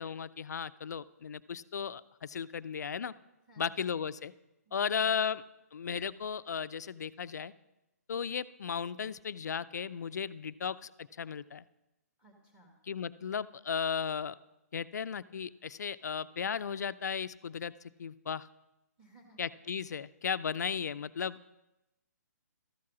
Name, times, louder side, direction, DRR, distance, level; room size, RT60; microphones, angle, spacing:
voice 1, 0.0-3.1 3.6-4.3 4.7-5.4 5.7-7.5 8.1-11.6 12.9-14.4 14.7-17.7 18.0-18.5 19.4-21.4, left 7 dB, 80° left, 15 dB, 0.4 m, -35 dB
voice 2, 3.5-3.8 4.7-5.1 12.2-12.8 19.0-19.4, right 2 dB, 10° right, 1 dB, 1.8 m, -60 dB
13.0 x 4.7 x 6.1 m, 0.95 s
hypercardioid pair, 150°, 9 cm